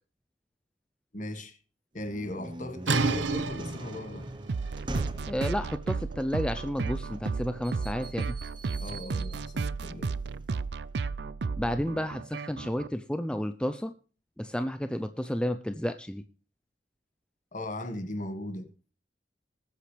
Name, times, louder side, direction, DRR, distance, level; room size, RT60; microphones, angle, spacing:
voice 1, 1.1-1.6 1.9-4.3 8.8-10.1 17.5-18.7, left 1 dB, 45° left, 1.6 m, -38 dB
sound 1, 2.0-10.6, right 1 dB, 25° right, 0.9 m, -42 dB
sound 2, 2.9-8.5, right 3 dB, 90° right, 1.0 m, -34 dB
sound 3, 4.5-12.9, right 4 dB, 65° right, 0.5 m, -33 dB
voice 2, 5.3-8.4 11.6-13.9 14.4-16.2, equal, 5° left, 0.5 m, -31 dB
20.0 x 8.3 x 3.3 m
head